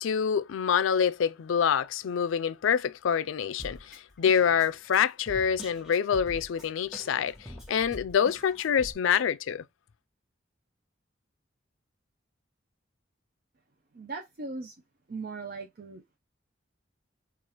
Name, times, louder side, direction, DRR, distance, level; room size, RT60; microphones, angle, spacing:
voice 1, 0.0-9.6, left 7 dB, 90° left, 0.4 m, -26 dB
Drum kit, 3.6-8.9, equal, ahead, 1.1 m, -45 dB
voice 2, 13.9-14.7 15.1-16.2, right 3 dB, 50° right, 0.5 m, -39 dB
4.8 x 2.4 x 2.9 m
head